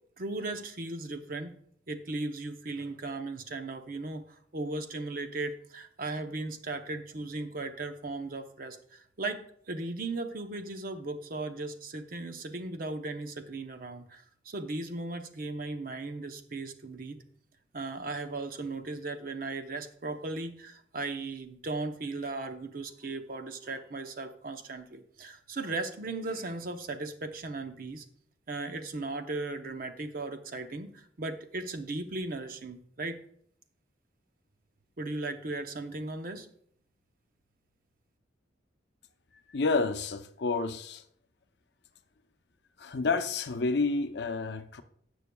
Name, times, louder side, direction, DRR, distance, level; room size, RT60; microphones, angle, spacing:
voice 1, 0.2-1.6 1.9-9.4 9.7-17.2 17.7-28.0 28.5-33.2 35.0-36.5, right 2 dB, 50° right, 0.7 m, -37 dB
voice 2, 39.5-41.0 42.8-44.8, left 3 dB, 60° left, 0.6 m, -29 dB
16.0 x 6.3 x 2.3 m
head